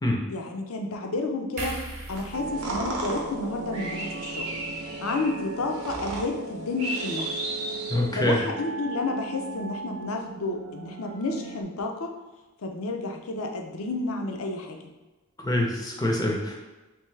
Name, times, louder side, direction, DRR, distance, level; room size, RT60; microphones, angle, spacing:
voice 1, 0.3-1.8 2.1-4.5 5.0-7.3 8.2-12.1 12.6-14.8, left 2 dB, 75° left, 3 dB, 0.5 m, -31 dB
sound 1, 1.6-4.9 5.3-5.5, right 1 dB, 30° right, 0.9 m, -40 dB
sound 2, 2.1-8.4, right 2 dB, 85° right, 0.7 m, -35 dB
sound 3, 2.3-11.6, right 3 dB, 55° right, 0.4 m, -38 dB
voice 2, 7.9-8.4 15.4-16.6, left 1 dB, 15° left, 0 dB, 0.5 m, -25 dB
3.4 x 3.1 x 3.2 m, 1.2 s
head